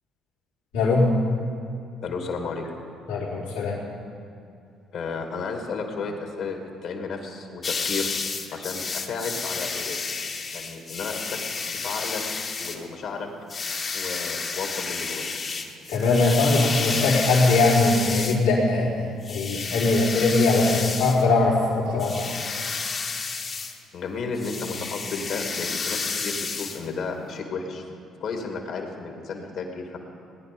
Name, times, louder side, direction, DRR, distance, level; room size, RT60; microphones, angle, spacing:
voice 1, 0.7-1.1 3.1-3.8 15.9-18.9 19.3-22.4, left 3 dB, 90° left, -7 dB, 3.8 m, -21 dB
voice 2, 2.0-2.6 4.9-8.1 8.5-10.0 10.5-12.2 12.6-13.3 13.9-15.3 23.9-27.8 28.2-30.0, left 4 dB, 65° left, 3 dB, 2.4 m, -33 dB
sound 1, 7.6-12.8 13.5-18.4 19.2-21.2 21.9-23.8 24.4-26.8, left 4 dB, 45° left, 1.5 m, -31 dB
19.0 x 10.5 x 5.4 m, 2.5 s
hypercardioid pair, 55°, 0 cm